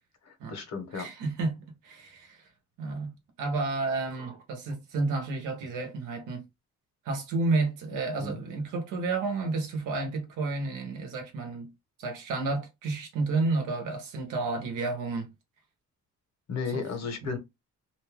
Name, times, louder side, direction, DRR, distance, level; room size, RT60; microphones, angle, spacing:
voice 1, 0.2-1.1 8.2-8.4 16.5-17.4, left 5 dB, 60° left, 1.1 m, -34 dB
voice 2, 0.9-2.4 2.8-3.1 3.4-6.4 7.0-11.7 12.0-15.3 16.7-16.8 17.2-17.4, right 3 dB, 90° right, 0.9 m, -31 dB
2.6 x 2.2 x 3.3 m
cardioid pair, 90°, 30 cm